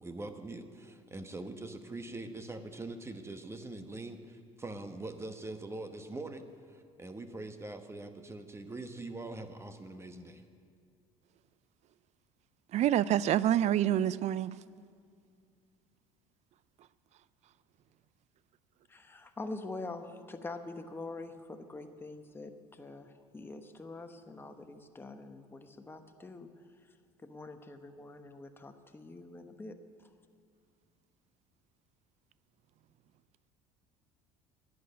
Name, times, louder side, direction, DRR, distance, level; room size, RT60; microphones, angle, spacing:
voice 1, 0.0-10.4, right 2 dB, 15° right, 1.1 m, -43 dB
voice 2, 12.7-14.6, right 11 dB, 50° right, 0.4 m, -27 dB
voice 3, 18.9-26.5 27.2-29.8, left 2 dB, 15° left, 1.0 m, -45 dB
11.0 x 8.7 x 9.4 m
supercardioid pair, 85°, 15 cm